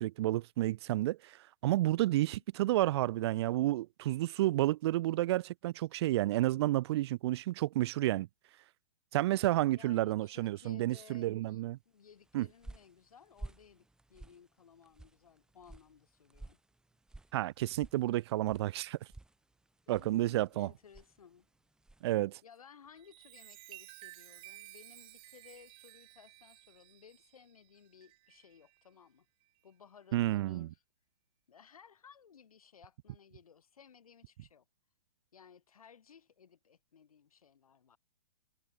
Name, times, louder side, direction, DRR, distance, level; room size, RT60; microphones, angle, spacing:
voice 1, 0.0-8.3 9.1-11.8 12.3-12.5 17.3-19.0 19.9-20.7 22.0-22.4 30.1-30.7, right 16 dB, 45° right, 0.7 m, -31 dB
voice 2, 2.1-2.4 9.8-16.6 19.9-21.5 22.4-29.3 29.6-30.8 31.5-34.7 35.3-38.0, left 7 dB, 70° left, 7.4 m, -59 dB
sound 1, 12.1-22.2, right 2 dB, 5° right, 1.2 m, -54 dB
Chime, 22.9-28.8 29.4-29.7, right 20 dB, 30° right, 1.6 m, -55 dB
figure-of-eight pair, 120°, 19 cm